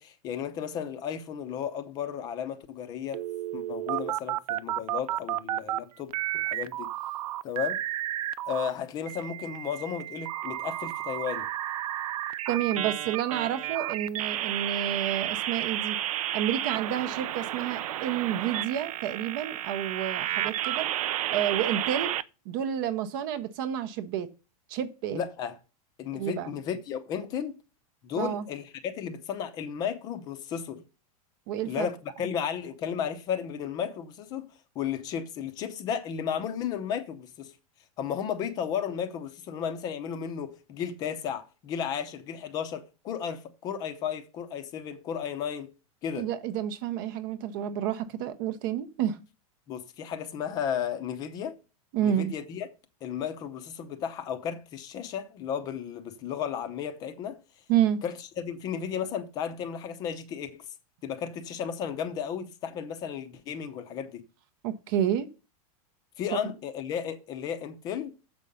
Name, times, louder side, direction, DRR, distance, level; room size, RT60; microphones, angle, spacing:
voice 1, 0.0-3.2 3.5-6.9 7.4-7.8 8.5-11.5 25.1-25.6 26.0-27.6 28.0-30.8 31.6-34.5 34.7-37.5 38.0-45.7 46.0-46.3 49.7-51.5 52.0-52.7 53.0-57.4 58.0-60.6 61.0-64.2 66.2-68.1, left 8 dB, 20° left, 0.6 m, -34 dB
sound 1, 3.1-5.8 6.1-8.7 9.1-22.2, right 13 dB, 85° right, 0.6 m, -32 dB
voice 2, 12.5-16.0 16.3-20.9 21.3-22.1 22.5-24.3 24.7-25.2 26.1-26.5 28.1-28.4 31.5-31.9 46.2-49.2 51.9-52.3 57.7-58.0 64.6-65.3, right 10 dB, 35° right, 0.6 m, -29 dB
7.4 x 5.3 x 6.8 m
supercardioid pair, 180°, 19 cm